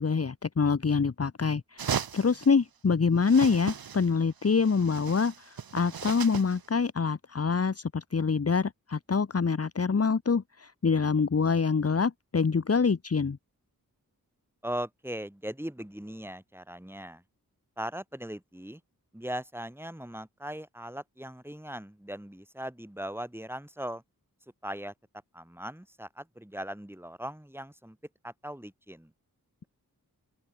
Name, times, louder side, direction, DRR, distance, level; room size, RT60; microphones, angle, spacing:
voice 1, 0.0-13.4, left 5 dB, 45° left, 1.2 m, -26 dB
sound 1, 1.8-2.5 3.2-4.2 4.4-6.6, right 7 dB, 90° right, 1.2 m, -36 dB
voice 2, 14.6-17.2 17.8-18.8 19.1-24.0 24.6-24.9 25.3-28.0 28.2-29.1, equal, 5° right, 6.3 m, -39 dB
open air
wide cardioid pair, 90°, 35 cm